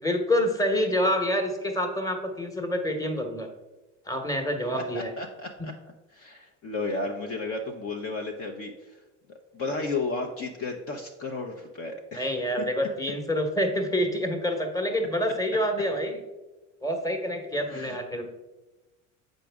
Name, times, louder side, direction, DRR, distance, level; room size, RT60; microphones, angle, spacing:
voice 1, 0.0-3.5 4.1-5.1 5.6-5.7 12.1-16.2 16.8-18.3, equal, 10° left, 4 dB, 1.2 m, -27 dB
voice 2, 4.7-5.7 6.1-9.0 9.3-12.7 17.7-18.0, left 3 dB, 35° left, 2 dB, 0.8 m, -33 dB
7.4 x 5.2 x 3.5 m, 1.1 s
hypercardioid pair, 80°, 38 cm